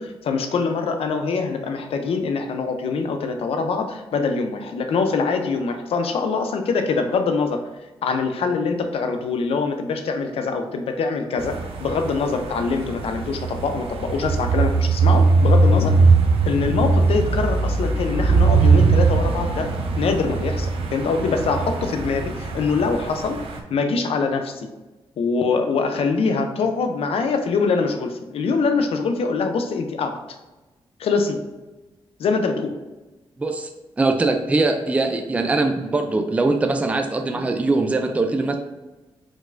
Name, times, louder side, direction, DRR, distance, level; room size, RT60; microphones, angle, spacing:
voice 1, 0.0-7.6 8.0-15.9 16.4-19.7 20.0-23.4 23.7-24.7 25.2-30.2 31.0-31.4 32.2-32.7 37.4-37.5, left 4 dB, 75° left, 6 dB, 0.6 m, -24 dB
sound 1, 11.4-23.6, right 4 dB, 75° right, 0.7 m, -20 dB
voice 2, 33.4-33.7 34.0-38.6, right 3 dB, 15° right, 5 dB, 0.3 m, -21 dB
4.9 x 4.0 x 2.6 m, 1.1 s
wide cardioid pair, 150°, 10 cm